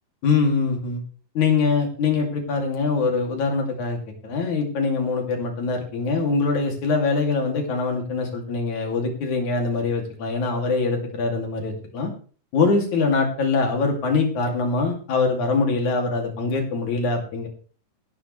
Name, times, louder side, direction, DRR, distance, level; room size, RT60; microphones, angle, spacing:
voice 1, 0.2-1.0 1.4-4.0 4.2-12.1 12.5-17.5, left 4 dB, 60° left, 2 dB, 4.0 m, -23 dB
16.5 x 11.0 x 3.3 m, 0.40 s
omnidirectional pair, 3.9 m